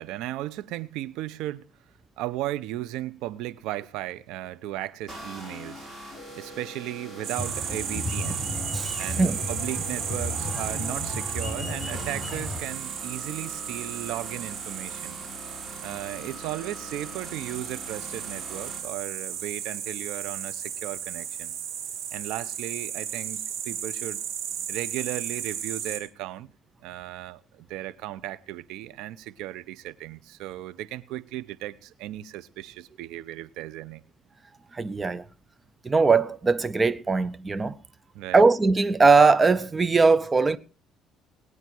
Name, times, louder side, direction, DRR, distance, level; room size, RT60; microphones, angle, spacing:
voice 1, 0.0-1.7 2.2-5.9 6.4-8.5 9.0-15.2 15.8-21.5 22.1-24.2 24.7-26.5 26.8-34.0 38.1-38.4, right 14 dB, 80° right, 0.9 m, -36 dB
sound 1, 5.1-18.8, equal, 5° right, 7.3 m, -42 dB
sound 2, 7.2-26.0, right 8 dB, 60° right, 4.7 m, -35 dB
sound 3, 7.4-12.6, left 2 dB, 15° left, 7.1 m, -34 dB
voice 2, 8.7-9.4 34.7-35.2 35.8-37.8 38.3-40.6, right 4 dB, 25° right, 0.9 m, -20 dB
19.0 x 9.6 x 4.7 m
cardioid pair, 110°, 0 cm